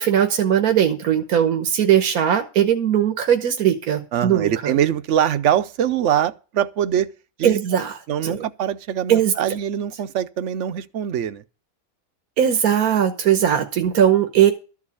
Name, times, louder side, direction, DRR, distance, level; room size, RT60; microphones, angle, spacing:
voice 1, 0.0-4.8 7.4-7.9 8.2-8.3 9.1-9.3 12.4-14.5, right 9 dB, 85° right, 1.6 m, -19 dB
voice 2, 4.1-7.1 7.4-7.6 8.1-11.4, right 10 dB, 60° right, 1.0 m, -23 dB
13.5 x 4.8 x 8.4 m
omnidirectional pair, 1.5 m